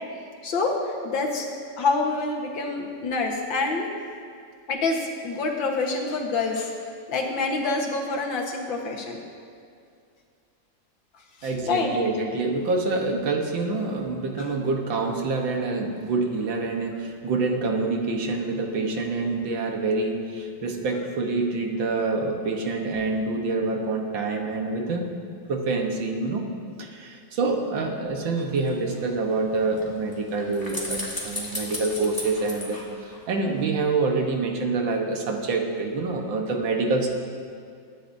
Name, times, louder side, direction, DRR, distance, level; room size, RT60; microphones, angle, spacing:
voice 1, 0.4-1.5 1.8-3.9 4.7-6.7 7.1-9.2 11.4-11.9, left 3 dB, 80° left, 0 dB, 2.1 m, -26 dB
voice 2, 11.4-25.1 25.5-26.5 26.8-37.1, right 3 dB, 85° right, 2 dB, 2.0 m, -26 dB
sound 1, 28.3-33.7 34.0-34.1, left 1 dB, 10° left, 1.8 m, -37 dB
22.5 x 9.9 x 2.7 m, 2.3 s
omnidirectional pair, 2.0 m